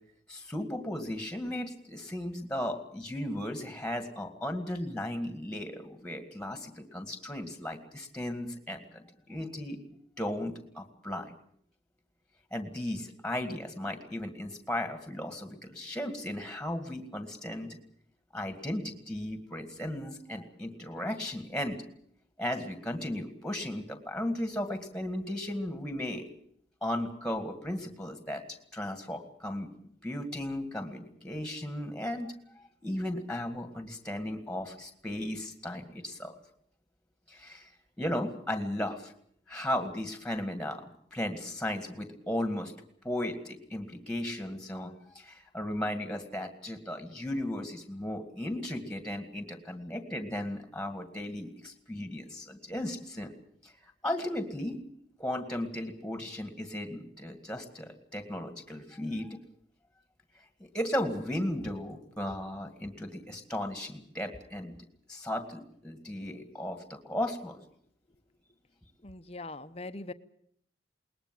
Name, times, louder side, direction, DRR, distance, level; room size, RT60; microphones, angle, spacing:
voice 1, 0.3-9.8 10.2-11.3 12.5-17.8 18.3-21.8 22.4-26.3 26.8-29.7 30.0-36.4 37.3-37.7 38.0-39.1 39.5-42.7 43.0-53.3 53.6-54.8 55.2-59.4 60.7-64.7 65.1-67.6, left 1 dB, 5° left, 7 dB, 2.0 m, -36 dB
voice 2, 69.0-70.1, left 2 dB, 30° left, 11 dB, 0.9 m, -41 dB
21.0 x 20.0 x 7.7 m, 0.66 s
head